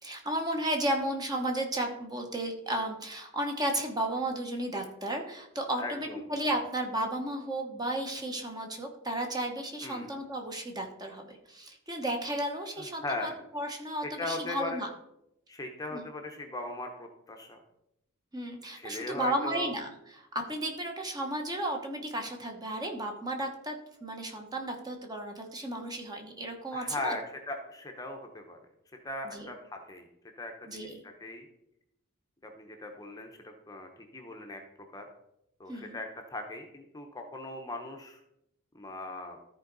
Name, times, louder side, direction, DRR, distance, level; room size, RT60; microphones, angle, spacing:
voice 1, 0.0-14.9 15.9-16.0 18.3-27.2 29.2-29.5 30.6-30.9 35.7-36.0, right 1 dB, 20° right, 3 dB, 1.0 m, -34 dB
voice 2, 5.8-6.2 9.8-10.1 13.0-13.3 14.0-14.9 15.5-17.6 18.7-19.7 26.7-28.6 29.0-30.1 30.4-31.5 32.4-34.6 34.9-35.0 35.6-38.2 38.7-39.4, left 2 dB, 15° left, 3 dB, 0.8 m, -39 dB
13.5 x 4.6 x 3.9 m, 0.81 s
head